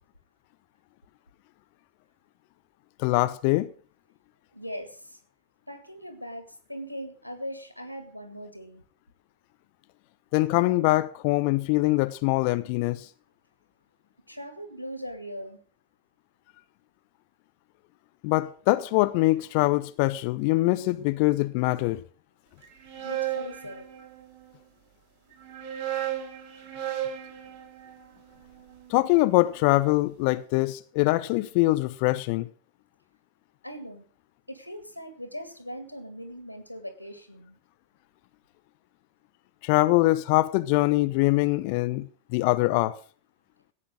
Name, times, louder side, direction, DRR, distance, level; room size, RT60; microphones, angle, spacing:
voice 1, 3.0-3.7 10.3-13.0 18.2-22.0 28.9-32.5 39.6-42.1 42.3-43.0, left 20 dB, 45° left, 0.8 m, -23 dB
voice 2, 4.5-5.2 5.7-8.8 14.3-15.6 23.0-23.9 33.6-34.1 34.5-37.6, equal, 90° right, 2.0 m, -40 dB
sound 1, 22.6-24.5 25.3-29.5, right 11 dB, 40° right, 5.8 m, -35 dB
15.0 x 8.7 x 6.2 m
figure-of-eight pair, 90°, 0 cm